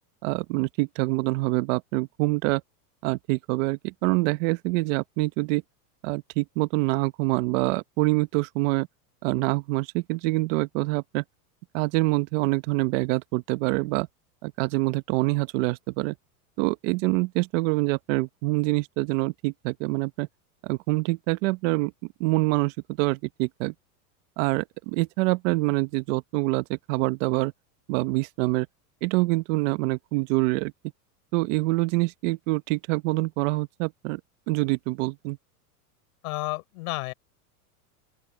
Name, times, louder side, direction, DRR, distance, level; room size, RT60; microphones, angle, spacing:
voice 1, 0.2-2.6 3.0-5.6 6.0-8.9 9.2-11.2 11.7-14.1 14.4-16.1 16.6-20.3 20.6-21.9 22.2-23.7 24.4-27.5 27.9-28.7 29.0-30.7 31.3-34.2 34.5-35.4, right 23 dB, 55° right, 1.2 m, -25 dB
voice 2, 36.2-37.1, left 22 dB, 65° left, 6.4 m, -31 dB
open air
supercardioid pair, 135°, 47 cm